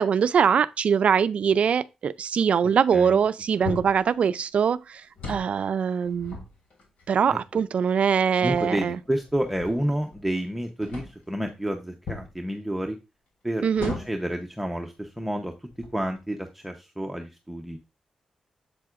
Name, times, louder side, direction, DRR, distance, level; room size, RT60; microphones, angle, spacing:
voice 1, 0.0-5.0 5.3-6.4 7.1-9.0 13.6-13.9, right 7 dB, 65° right, 0.4 m, -22 dB
sound 1, 3.6-4.1 5.0-5.6 6.0-7.1 7.8-7.9 8.4-10.4 10.8-11.3 12.1-12.3 13.7-14.3 15.1-15.2 15.7-16.2, left 3 dB, 75° left, 2.9 m, -38 dB
voice 2, 7.3-7.6 8.4-13.0 13.4-17.8, equal, 5° right, 0.8 m, -30 dB
7.6 x 7.5 x 2.5 m
cardioid pair, 90°, 2 cm